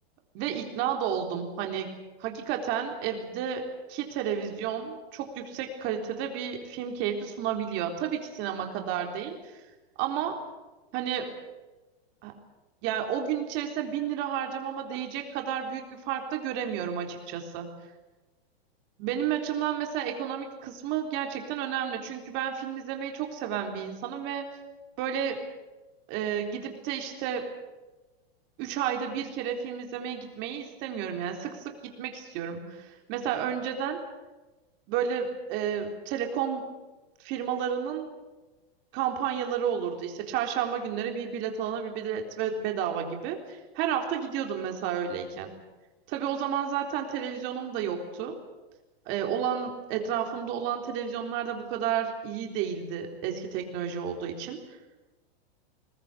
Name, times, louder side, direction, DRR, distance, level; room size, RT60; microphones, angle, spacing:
voice 1, 0.3-1.9 2.2-9.4 10.0-10.4 10.9-11.3 12.2-12.3 12.8-17.7 19.0-24.5 25.0-25.4 26.1-27.5 28.6-34.0 34.9-36.6 37.2-38.0 38.9-45.6 46.1-48.4 49.1-54.6, right 8 dB, 40° right, 3 dB, 3.8 m, -31 dB
21.0 x 19.5 x 8.3 m, 1.2 s
supercardioid pair, 150°, 31 cm